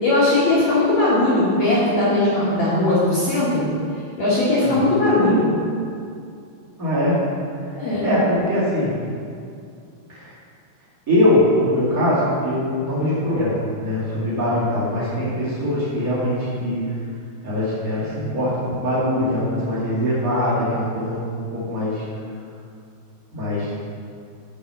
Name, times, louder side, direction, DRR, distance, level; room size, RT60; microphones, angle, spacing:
voice 1, 0.0-3.7 4.2-5.5 7.8-8.1, left 2 dB, 55° left, -9 dB, 2.1 m, -19 dB
voice 2, 6.8-7.2 8.0-8.9 10.1-10.3 11.1-16.8 17.4-21.2 21.5-22.0 23.3-23.7, left 1 dB, 40° right, -9 dB, 1.2 m, -22 dB
7.0 x 6.3 x 5.4 m, 2.4 s
omnidirectional pair, 4.9 m